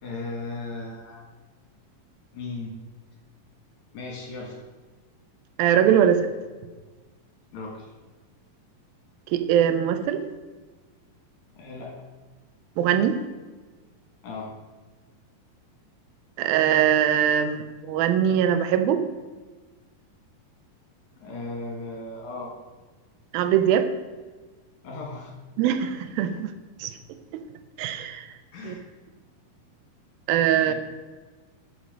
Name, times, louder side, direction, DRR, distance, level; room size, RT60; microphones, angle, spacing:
voice 1, 0.0-1.2 2.3-2.7 3.9-4.6 7.5-7.9 11.6-12.0 14.2-14.5 21.2-22.5 24.8-25.3 28.5-28.8 30.5-30.7, left 3 dB, 60° left, 0 dB, 3.1 m, -36 dB
voice 2, 5.6-6.3 9.3-10.2 12.8-13.2 16.4-19.0 23.3-23.9 25.6-26.5 26.8-26.9 27.8-28.3 28.6-28.7 30.3-30.7, right 9 dB, 85° right, 9 dB, 2.6 m, -21 dB
13.5 x 6.4 x 5.1 m, 1.3 s
omnidirectional pair, 4.1 m